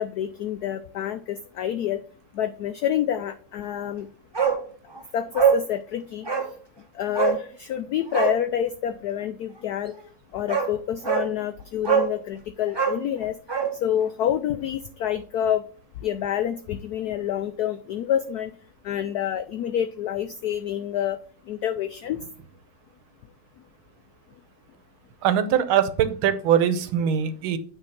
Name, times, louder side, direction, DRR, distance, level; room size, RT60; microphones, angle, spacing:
voice 1, 0.0-2.0 2.3-4.1 5.1-6.3 6.9-9.9 10.3-13.4 13.8-15.6 16.0-18.5 18.8-21.2 21.5-22.2, left 10 dB, 85° left, 10 dB, 0.8 m, -27 dB
Bark, 4.3-4.6 4.9-5.0 5.3-5.6 6.2-6.5 7.1-7.4 8.1-8.4 10.0-10.1 10.5-10.7 11.0-11.3 11.8-12.1 12.7-13.7 14.0-14.1, right 7 dB, 20° right, 0.6 m, -23 dB
voice 2, 25.2-27.6, right 9 dB, 90° right, 12 dB, 1.6 m, -22 dB
9.0 x 3.5 x 5.7 m, 0.44 s
omnidirectional pair, 2.2 m